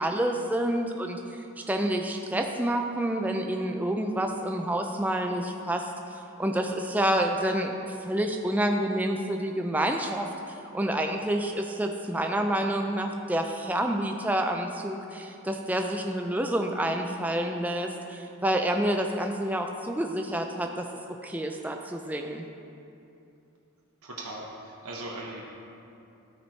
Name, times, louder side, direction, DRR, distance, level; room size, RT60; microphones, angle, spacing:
voice 1, 0.0-5.9 6.4-10.3 10.7-22.5, right 1 dB, 5° right, 3 dB, 0.3 m, -28 dB
voice 2, 24.0-25.4, right 2 dB, 85° right, -3 dB, 1.0 m, -39 dB
13.0 x 4.4 x 4.4 m, 2.7 s
head